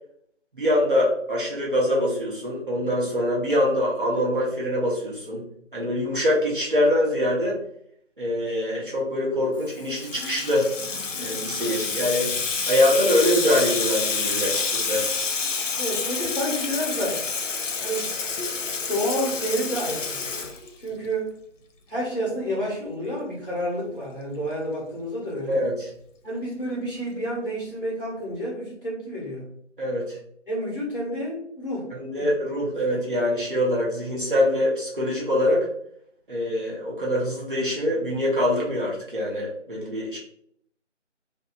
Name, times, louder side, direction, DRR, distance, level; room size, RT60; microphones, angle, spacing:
voice 1, 0.5-5.5 5.7-7.6 8.2-10.7 11.2-12.3 12.7-15.1 25.5-25.9 29.8-30.2 31.9-35.7 36.3-40.2, left 1 dB, 45° right, -5 dB, 0.8 m, -24 dB
Water tap faucet / Sink (filling or washing), 9.7-21.1, left 4 dB, 85° left, 0.6 m, -28 dB
voice 2, 15.8-17.2 17.8-18.1 18.9-20.3 20.8-21.3 21.9-25.7 26.2-29.5 30.5-32.6 32.9-33.0, equal, 45° left, -5 dB, 1.1 m, -30 dB
2.7 x 2.4 x 2.3 m, 0.68 s
figure-of-eight pair, 180°, 37 cm